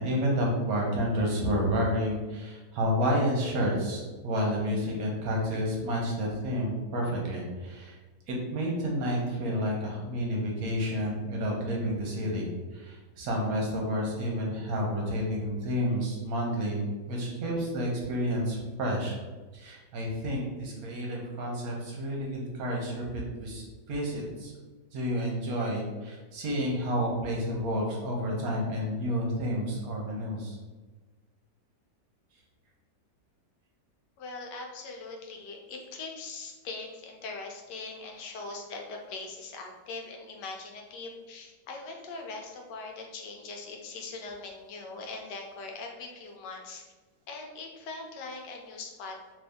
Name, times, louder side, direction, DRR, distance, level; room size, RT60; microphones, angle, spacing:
voice 1, 0.0-8.0 8.3-19.1 19.5-24.5 24.9-30.6, equal, 65° right, -1 dB, 1.1 m, -30 dB
voice 2, 34.2-46.9 47.3-49.2, left 3 dB, 80° left, 1 dB, 1.3 m, -41 dB
3.0 x 2.6 x 3.4 m, 1.3 s
omnidirectional pair, 1.8 m